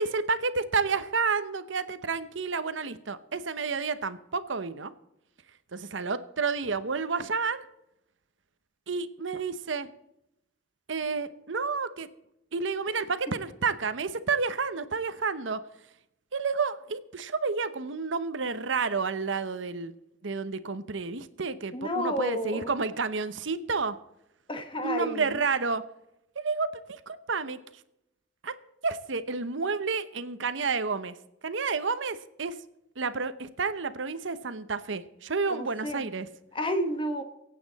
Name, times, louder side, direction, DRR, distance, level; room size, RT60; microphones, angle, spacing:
voice 1, 0.0-4.9 5.7-7.6 8.9-9.9 10.9-12.1 12.5-15.6 16.3-19.9 20.2-24.0 24.8-25.8 26.4-27.6 28.4-28.5 28.8-31.1 31.4-32.5 33.0-36.3, right 4 dB, 75° right, 13 dB, 0.9 m, -30 dB
voice 2, 21.7-22.7 24.5-25.4 35.5-36.1 36.5-37.2, equal, 25° left, 8 dB, 1.4 m, -31 dB
24.5 x 8.6 x 4.1 m, 0.83 s
head